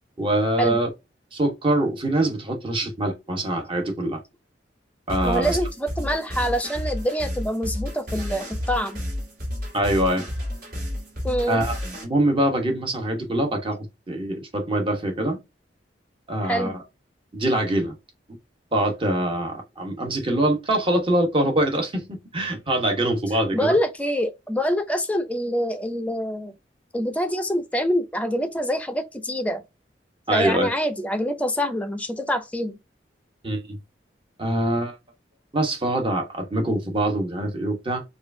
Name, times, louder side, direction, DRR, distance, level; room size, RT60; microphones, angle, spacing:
voice 1, 0.2-0.9 1.3-4.2 5.1-5.6 9.7-10.3 11.5-11.7 12.0-15.4 16.3-16.8 17.3-18.0 18.7-22.1 22.3-23.8 30.3-30.7 33.4-33.8 34.4-35.0 35.5-38.0, right 1 dB, 30° right, 1.1 m, -24 dB
sound 1, 5.1-12.0, left 1 dB, 55° right, 2.1 m, -31 dB
voice 2, 5.2-9.0 11.2-11.6 16.4-16.7 23.5-26.5 26.9-29.6 30.3-32.8, equal, 10° left, 0.6 m, -25 dB
4.6 x 2.5 x 2.6 m
head